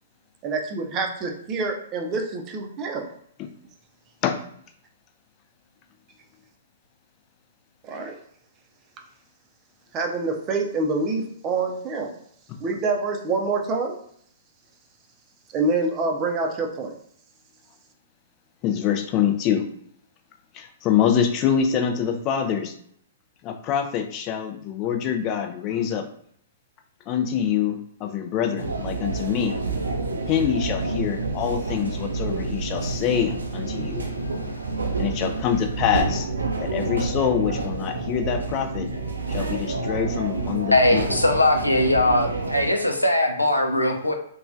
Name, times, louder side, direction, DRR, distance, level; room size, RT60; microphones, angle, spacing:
voice 1, 0.4-3.1 7.8-8.2 9.9-12.2 12.6-14.0 15.5-16.9, right 3 dB, 30° right, 3 dB, 0.5 m, -26 dB
voice 2, 18.6-19.7 20.5-22.7 23.4-26.1 27.1-29.6 30.3-34.1 35.0-36.3 36.6-38.9 39.3-41.2, left 8 dB, 30° left, 5 dB, 0.4 m, -25 dB
sound 1, 28.6-42.7, right 3 dB, 80° right, 0.5 m, -28 dB
voice 3, 34.2-34.5 40.7-44.1, left 1 dB, 90° left, 4 dB, 0.4 m, -21 dB
3.0 x 2.2 x 2.5 m, 0.65 s
figure-of-eight pair, 115°, 0 cm